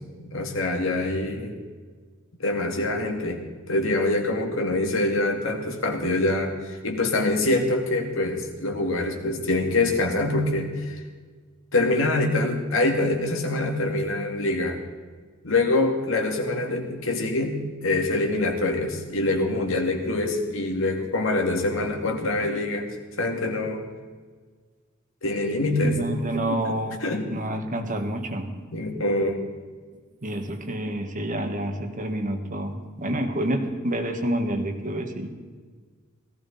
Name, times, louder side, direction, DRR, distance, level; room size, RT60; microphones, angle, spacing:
voice 1, 0.2-1.6 2.4-3.4 3.7-11.0 11.7-14.8 15.4-22.9 23.2-23.8 25.2-26.0 27.0-27.3 28.7-29.4, left 2 dB, 70° left, 3 dB, 2.4 m, -25 dB
voice 2, 25.8-27.0 27.3-28.5 30.2-35.3, right 1 dB, 40° right, 5 dB, 1.5 m, -28 dB
18.0 x 15.0 x 4.2 m, 1.5 s
head